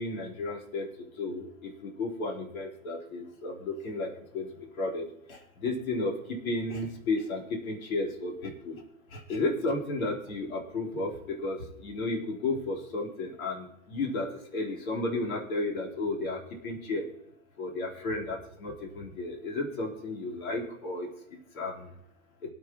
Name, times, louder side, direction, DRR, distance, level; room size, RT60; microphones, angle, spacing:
voice 1, 0.0-4.5 4.7-8.8 9.1-17.1 17.6-21.1 21.5-21.9, left 2 dB, 75° left, -2 dB, 4.1 m, -33 dB
24.5 x 8.2 x 3.0 m, 0.74 s
hypercardioid pair, 115°, 42 cm